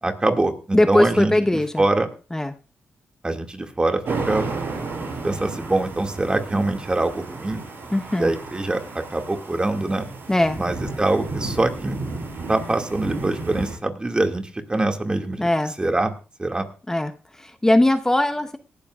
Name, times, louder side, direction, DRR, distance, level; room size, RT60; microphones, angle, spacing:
voice 1, 0.0-1.3 1.8-2.1 3.2-4.0 4.3-4.5 5.2-7.6 8.2-8.8 9.1-10.1 10.6-12.0 12.5-15.5 15.8-16.1 16.4-16.6, right 2 dB, 20° right, 4 dB, 2.1 m, -23 dB
voice 2, 0.7-1.8 2.3-2.5 7.9-8.3 10.3-10.6 15.4-15.7 16.9-18.6, left 1 dB, 10° left, 9 dB, 0.8 m, -20 dB
sound 1, 4.1-13.8, right 3 dB, 60° right, 5.6 m, -32 dB
18.5 x 12.5 x 2.4 m, 0.34 s
cardioid pair, 80°, 4 cm